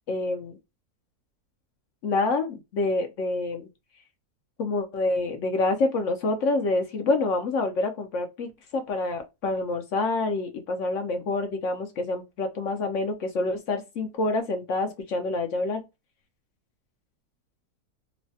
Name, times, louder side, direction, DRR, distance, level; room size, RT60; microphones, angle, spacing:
voice 1, 0.1-0.6 2.0-3.7 4.6-15.8, left 2 dB, 65° left, 0.8 m, -27 dB
3.1 x 2.1 x 2.6 m
omnidirectional pair, 1.7 m